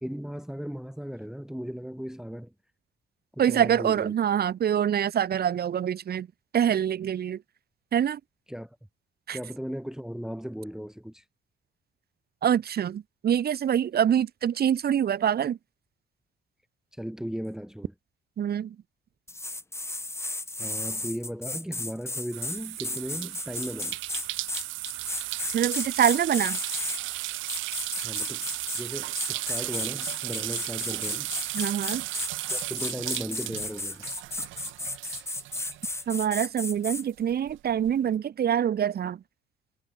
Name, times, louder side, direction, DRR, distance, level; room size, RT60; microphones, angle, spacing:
voice 1, 0.0-2.5 3.3-4.1 8.5-8.8 9.3-11.2 17.0-17.9 20.6-24.0 28.0-28.5 28.7-31.3 32.5-34.1, equal, 5° right, 0.7 m, -36 dB
voice 2, 3.4-6.3 6.5-7.4 7.9-8.2 9.3-9.4 12.4-15.6 18.4-18.8 25.5-26.6 31.5-32.1 36.1-39.2, right 9 dB, 50° right, 1.0 m, -25 dB
sound 1, 19.3-27.0 27.5-28.8 29.1-37.0, left 2 dB, 15° left, 2.1 m, -34 dB
sound 2, 22.3-36.4 36.7-37.9, right 17 dB, 75° right, 0.4 m, -35 dB
cardioid pair, 90°, 20 cm